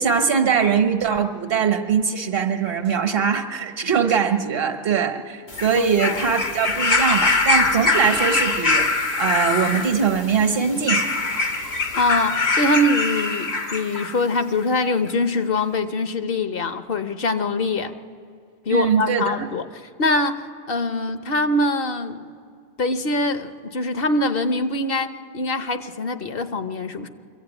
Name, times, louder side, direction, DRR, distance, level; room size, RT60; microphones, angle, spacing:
voice 1, 0.0-11.0 18.7-19.4, right 6 dB, 65° right, 7 dB, 1.3 m, -21 dB
sound 1, 5.5-14.2 15.1-15.2, left 3 dB, 85° left, 1.8 m, -23 dB
voice 2, 5.8-6.2 11.9-17.9 18.7-19.7 20.0-22.3 22.8-25.1 25.3-27.1, left 2 dB, 65° left, 9 dB, 1.1 m, -23 dB
23.0 x 15.0 x 9.0 m, 2.2 s
omnidirectional pair, 1.1 m